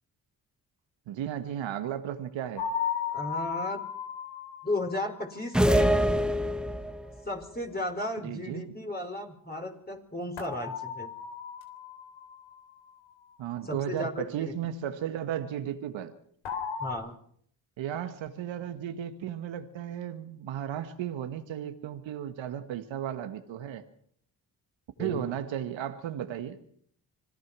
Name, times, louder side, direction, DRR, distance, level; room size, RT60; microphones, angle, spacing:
voice 1, 1.1-2.7 8.2-8.8 13.4-16.1 17.8-23.8 25.0-26.6, right 10 dB, 80° right, 8 dB, 1.6 m, -35 dB
sound 1, 2.6-5.5 10.4-12.6 16.5-16.9, left 7 dB, 80° left, 3.8 m, -35 dB
voice 2, 3.1-3.8 4.6-5.9 7.2-11.1 13.6-14.5 16.8-17.2 25.0-25.2, left 1 dB, 20° left, 1 dB, 4.8 m, -35 dB
sound 2, 5.5-7.1, equal, ahead, 1.3 m, -24 dB
26.0 x 16.5 x 6.2 m, 0.64 s
supercardioid pair, 45°, 45 cm